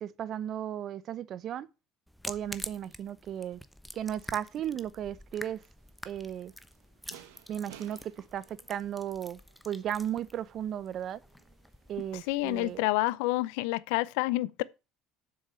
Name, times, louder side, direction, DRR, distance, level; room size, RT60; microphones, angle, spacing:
voice 1, 0.0-1.7 2.3-3.6 3.9-5.6 6.0-6.5 7.5-11.2 11.9-12.8, right 10 dB, 50° right, 0.8 m, -35 dB
sound 1, 2.1-12.8, equal, ahead, 0.9 m, -47 dB
sound 2, 5.8-13.6, right 12 dB, 80° right, 1.1 m, -58 dB
voice 2, 12.3-14.6, left 19 dB, 75° left, 0.5 m, -28 dB
7.4 x 6.4 x 6.8 m
hypercardioid pair, 70°, 0 cm